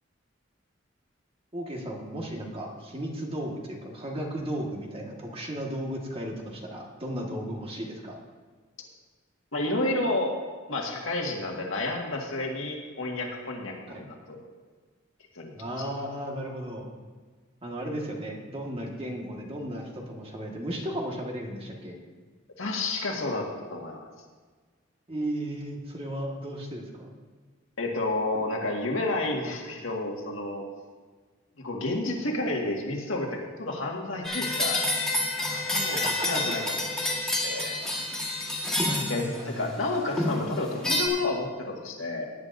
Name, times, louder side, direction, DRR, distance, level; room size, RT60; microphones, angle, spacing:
voice 1, 1.5-8.2 13.9-14.0 15.5-16.9 17.6-22.0 25.1-27.1 35.9-36.3 38.9-39.7, right 1 dB, 30° right, 0 dB, 1.7 m, -35 dB
voice 2, 9.5-10.4 10.7-14.4 15.4-15.5 22.6-24.1 27.8-30.6 31.6-34.8 35.5-37.7 39.1-42.2, left 2 dB, 75° left, 0 dB, 1.8 m, -31 dB
sound 1, 34.2-39.6 40.2-41.1, left 1 dB, 5° left, 1.6 m, -28 dB
17.5 x 9.5 x 2.7 m, 1.4 s
head